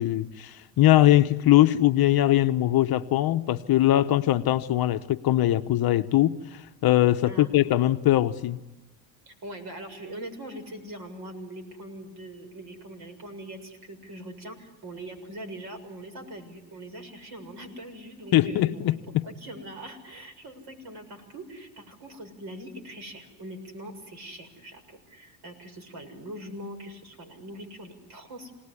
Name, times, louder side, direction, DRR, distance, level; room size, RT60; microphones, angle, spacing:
voice 1, 0.0-8.6 18.3-19.3, left 14 dB, 50° left, 1.0 m, -21 dB
voice 2, 9.3-18.9 19.4-28.6, right 1 dB, 50° right, 6.8 m, -42 dB
27.5 x 19.0 x 9.8 m
supercardioid pair, 85°, 48 cm